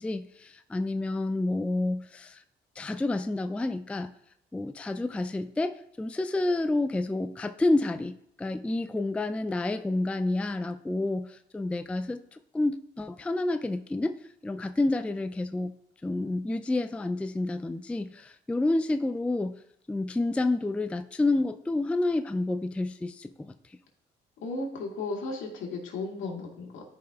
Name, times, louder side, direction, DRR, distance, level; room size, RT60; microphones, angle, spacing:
voice 1, 0.0-2.4 2.8-4.1 4.5-14.1 14.4-15.7 16.0-19.6 19.9-23.5, left 2 dB, 5° left, 9 dB, 0.3 m, -29 dB
voice 2, 24.4-26.9, left 3 dB, 80° left, 0 dB, 2.1 m, -35 dB
13.0 x 5.2 x 2.3 m, 0.72 s
cardioid pair, 90°, 20 cm